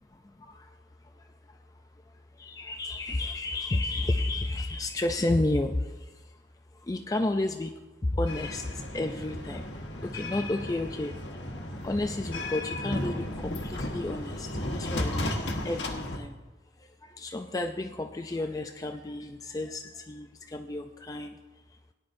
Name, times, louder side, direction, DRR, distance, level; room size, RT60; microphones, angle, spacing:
voice 1, 2.4-5.9 6.9-7.7 8.0-8.7 8.9-9.6 9.9-11.4 11.8-15.4 15.6-16.4 17.0-21.4, left 2 dB, 20° left, 5 dB, 0.4 m, -31 dB
sound 1, 8.3-16.2, left 1 dB, 80° left, 1.3 m, -34 dB
18.0 x 10.5 x 2.6 m, 1.2 s
head